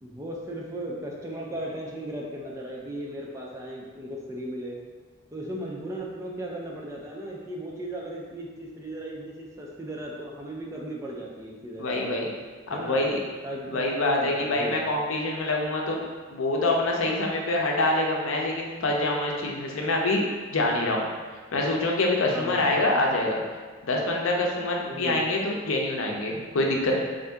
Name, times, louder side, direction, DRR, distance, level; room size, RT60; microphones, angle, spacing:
voice 1, 0.0-4.8 5.3-12.3 12.7-13.1 13.4-14.9 22.3-22.8 24.9-25.2, right 1 dB, 15° right, -2 dB, 0.4 m, -36 dB
voice 2, 11.8-12.3 12.7-13.2 13.7-16.0 16.3-20.2 20.5-21.1 21.5-23.4 23.8-27.0, left 2 dB, 80° left, -1 dB, 0.6 m, -25 dB
3.7 x 2.6 x 3.4 m, 1.4 s
head